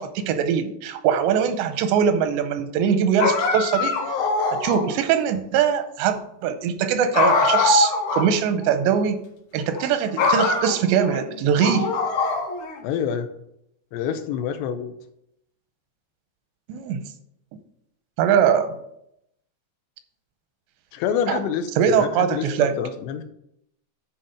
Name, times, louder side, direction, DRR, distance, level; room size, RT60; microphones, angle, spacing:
voice 1, 0.0-4.0 4.5-9.2 9.5-11.9 16.7-17.0 18.2-18.8 21.3-21.4 21.8-22.7, right 8 dB, 90° right, 9 dB, 2.9 m, -22 dB
sound 1, 3.2-5.0 7.1-8.3 8.6-8.7 9.6-9.9 10.2-11.2 11.6-12.8, left 3 dB, 60° left, 2.2 m, -22 dB
voice 2, 12.8-13.3 13.9-14.9 20.9-23.2, left 8 dB, 85° left, 8 dB, 2.8 m, -27 dB
10.0 x 4.4 x 5.1 m, 0.76 s
omnidirectional pair, 5.0 m